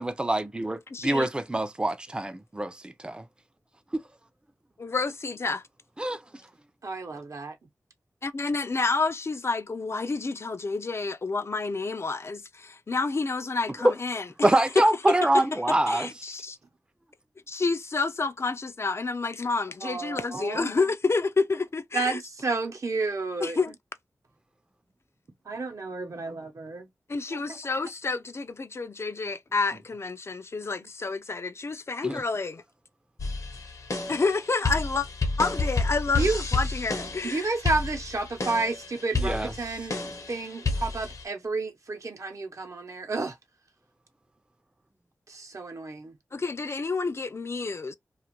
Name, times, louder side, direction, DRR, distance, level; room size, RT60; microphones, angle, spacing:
voice 1, 0.0-3.2 3.9-4.0 6.0-6.2 13.8-13.9 14.4-16.1 32.0-32.2 39.1-39.5, right 1 dB, 15° right, 0.4 m, -25 dB
voice 2, 0.9-1.3 4.8-5.6 8.2-14.5 14.8-15.4 15.9-16.6 17.5-22.2 23.4-23.7 27.1-32.6 34.1-35.1 35.4-37.5 46.3-47.9, left 4 dB, 50° left, 0.3 m, -29 dB
voice 3, 6.8-7.6 19.8-20.7 21.9-23.6 25.5-26.9 27.3-27.6 36.2-36.4 37.2-40.0 40.3-43.4 45.3-46.2, right 3 dB, 60° right, 0.7 m, -31 dB
sound 1, 33.2-41.2, left 3 dB, 65° left, 0.7 m, -30 dB
2.5 x 2.4 x 2.9 m
wide cardioid pair, 60°, 6 cm